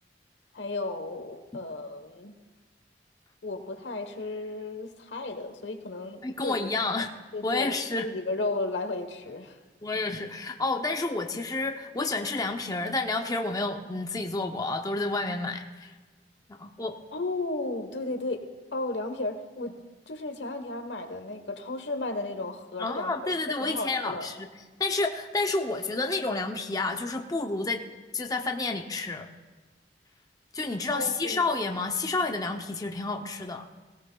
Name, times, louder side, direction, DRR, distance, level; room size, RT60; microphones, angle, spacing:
voice 1, 0.5-2.3 3.4-6.6 7.3-7.7 8.0-9.6 17.1-18.4 18.7-19.7 20.1-23.3 23.6-24.3 30.9-31.5, left 2 dB, 85° left, 7 dB, 1.1 m, -34 dB
voice 2, 6.2-7.1 7.4-8.1 9.8-15.9 16.5-17.0 22.8-24.5 24.8-27.8 28.1-29.3 30.5-33.7, left 3 dB, 20° left, 4 dB, 0.6 m, -30 dB
18.0 x 17.0 x 2.3 m, 1.3 s
head